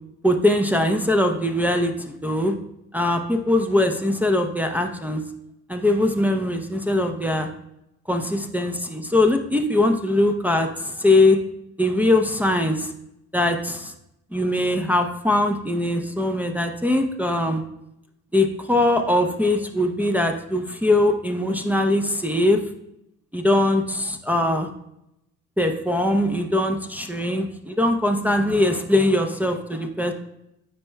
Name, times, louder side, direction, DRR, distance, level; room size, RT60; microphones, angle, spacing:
voice 1, 0.2-2.5 2.9-5.2 5.7-7.5 8.1-11.4 11.8-12.9 13.3-13.9 14.3-17.6 18.3-22.6 23.3-24.7 25.6-30.1, left 1 dB, 5° right, 3 dB, 0.7 m, -21 dB
9.5 x 4.5 x 2.2 m, 0.83 s
hypercardioid pair, 55°, 35 cm